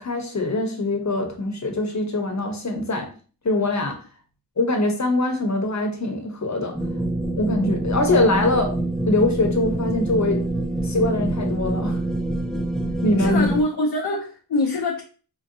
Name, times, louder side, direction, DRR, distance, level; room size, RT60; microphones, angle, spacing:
voice 1, 0.0-3.1 3.4-4.0 4.6-6.8 7.4-8.7 9.1-10.4 10.8-12.0 13.0-13.5, left 2 dB, 45° left, 1.0 m, -23 dB
sound 1, 6.7-13.6, right 2 dB, ahead, 0.3 m, -25 dB
voice 2, 13.2-15.0, left 2 dB, 80° left, 0.6 m, -24 dB
4.4 x 2.8 x 2.6 m
wide cardioid pair, 65°, 38 cm